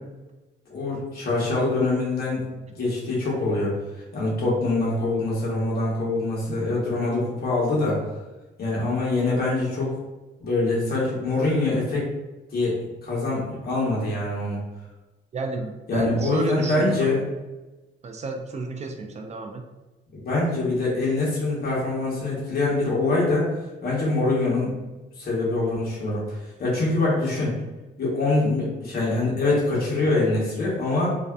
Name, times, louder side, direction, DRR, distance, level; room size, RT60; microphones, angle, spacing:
voice 1, 0.7-2.4 2.8-3.7 4.1-8.0 8.6-9.9 10.4-12.0 12.5-14.6 15.9-17.2 20.1-23.5 23.8-24.7 25.2-27.6 28.0-31.1, left 2 dB, 50° left, -6 dB, 1.0 m, -24 dB
voice 2, 15.3-17.1 18.0-19.6, right 3 dB, 35° right, 4 dB, 0.4 m, -32 dB
2.6 x 2.1 x 2.3 m, 1.1 s
cardioid pair, 90°, 20 cm